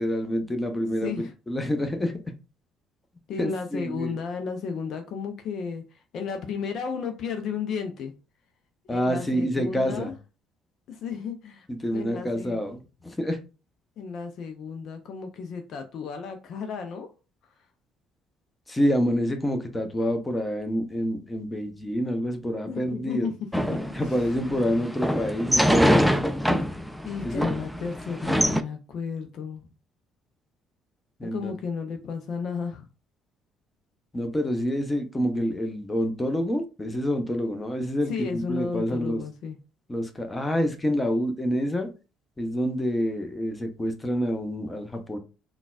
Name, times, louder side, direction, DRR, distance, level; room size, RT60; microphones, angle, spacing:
voice 1, 0.0-2.2 3.4-4.2 8.9-10.1 11.7-13.4 18.7-23.3 23.9-26.0 27.2-27.5 31.2-31.5 34.1-39.2 39.9-41.9 42.4-45.2, equal, 15° left, 0.8 m, -27 dB
voice 2, 1.0-1.3 3.3-5.8 6.1-8.1 8.9-10.1 10.9-11.7 11.9-12.6 14.0-17.1 22.7-23.3 23.7-23.8 27.0-29.7 31.2-32.9 38.1-39.6, left 5 dB, 60° left, 0.4 m, -33 dB
sound 1, 23.5-28.6, equal, ahead, 0.4 m, -24 dB
3.8 x 2.3 x 2.4 m
hypercardioid pair, 55°, 0 cm